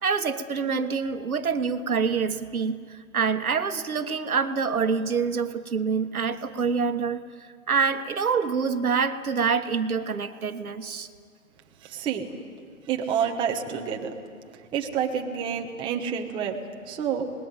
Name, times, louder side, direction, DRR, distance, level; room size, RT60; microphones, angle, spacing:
voice 1, 0.0-11.1, right 5 dB, 80° right, 9 dB, 1.5 m, -26 dB
voice 2, 11.8-12.3 12.9-14.1 14.4-17.3, right 7 dB, 10° right, 2 dB, 1.1 m, -29 dB
25.0 x 20.0 x 9.1 m, 2.2 s
hypercardioid pair, 145°, 43 cm